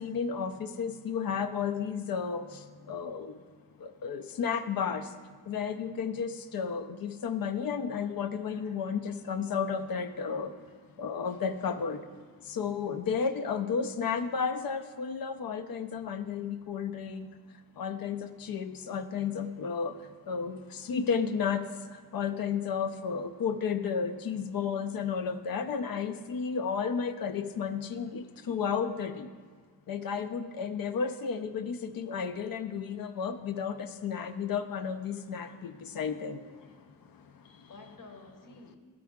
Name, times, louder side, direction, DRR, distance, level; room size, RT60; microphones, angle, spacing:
voice 1, 0.0-2.4 2.9-3.3 4.0-5.0 5.5-10.5 11.0-12.0 12.5-17.3 17.8-19.9 20.3-20.6 20.9-21.6 22.1-29.3 29.9-36.4, left 6 dB, 85° left, 9 dB, 0.5 m, -32 dB
voice 2, 35.1-35.5 35.9-36.1 36.6-36.7 37.7-38.8, left 3 dB, 70° left, 3 dB, 1.2 m, -53 dB
12.0 x 4.8 x 3.6 m, 1.5 s
wide cardioid pair, 105°, 34 cm